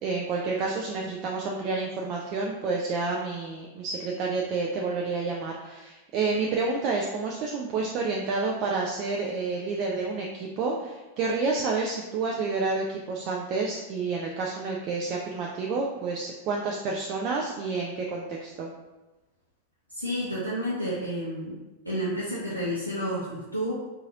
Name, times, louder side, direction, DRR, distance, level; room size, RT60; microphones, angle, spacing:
voice 1, 0.0-18.7, right 4 dB, 40° right, -1 dB, 0.4 m, -29 dB
voice 2, 19.9-21.5 21.8-23.7, equal, 85° right, -8 dB, 0.6 m, -30 dB
3.9 x 2.4 x 2.8 m, 1.1 s
figure-of-eight pair, 90°, 0 cm